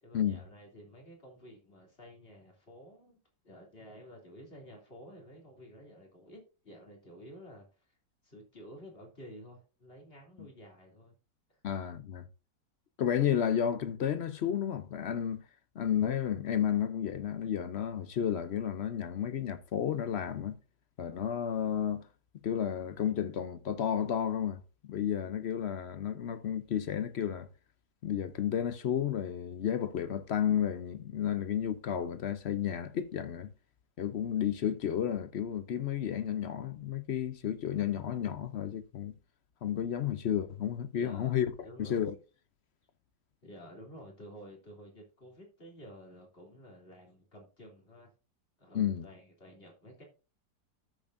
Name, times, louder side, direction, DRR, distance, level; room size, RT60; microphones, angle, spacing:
voice 1, 0.0-3.2 3.4-7.9 8.2-11.1 11.5-11.6 40.9-42.0 43.4-48.1 48.6-50.0, equal, 35° left, 3.2 m, -52 dB
voice 2, 11.6-12.2 13.0-15.4 15.8-20.6 21.0-22.1 22.4-27.5 28.0-33.5 34.0-39.1 39.6-42.1 48.7-49.1, left 9 dB, 65° left, 0.6 m, -32 dB
13.0 x 7.0 x 2.6 m
omnidirectional pair, 1.8 m